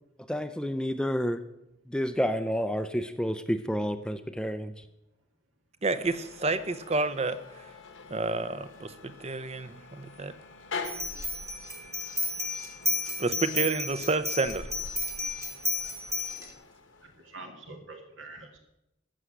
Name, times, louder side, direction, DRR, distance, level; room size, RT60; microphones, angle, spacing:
voice 1, 0.3-1.4 1.9-4.7, equal, 5° left, 10 dB, 0.5 m, -29 dB
voice 2, 5.8-7.6 8.1-10.3 13.2-14.7, right 3 dB, 30° right, 13 dB, 0.7 m, -30 dB
sound 1, 6.0-17.4, left 4 dB, 80° left, 1.4 m, -45 dB
sound 2, 10.8-16.5, left 2 dB, 15° right, 1.5 m, -32 dB
voice 3, 17.0-18.6, right 3 dB, 80° right, 3 dB, 1.8 m, -45 dB
14.5 x 6.2 x 8.0 m, 0.88 s
head